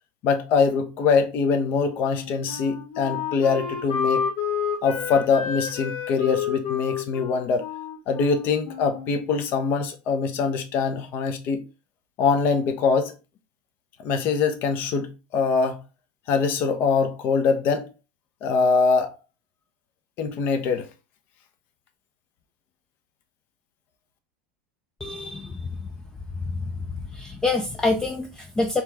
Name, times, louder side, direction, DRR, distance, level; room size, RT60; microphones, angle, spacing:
voice 1, 0.2-4.2 4.8-7.7 8.1-11.6 12.2-13.1 14.0-15.8 16.3-17.9 18.4-19.1 20.2-20.9, left 5 dB, 50° left, 0.9 m, -23 dB
Wind instrument woodwind instrument, 2.0-9.5, left 7 dB, 75° left, 1.4 m, -30 dB
voice 2, 25.0-25.7 26.5-26.6 27.1-28.8, left 3 dB, 15° left, 0.4 m, -26 dB
4.3 x 3.0 x 3.4 m
supercardioid pair, 130°, 5 cm